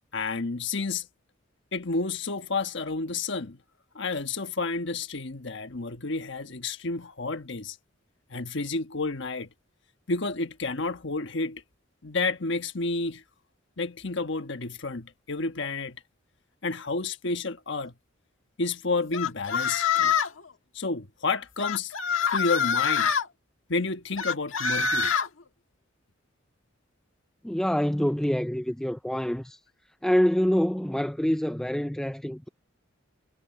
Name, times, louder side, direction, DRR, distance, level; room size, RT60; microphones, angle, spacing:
voice 1, 0.1-1.1 1.7-3.6 3.9-7.8 8.3-9.5 10.1-11.6 12.0-13.2 13.8-16.0 16.6-17.9 18.6-20.1 20.7-21.9 22.3-23.1 23.7-25.1, left 3 dB, 65° left, 1.4 m, -30 dB
sound 1, 19.1-20.4 21.6-23.2 24.2-25.3, left 6 dB, 80° left, 1.6 m, -25 dB
voice 2, 27.4-29.6 30.0-32.5, equal, 5° left, 0.4 m, -26 dB
head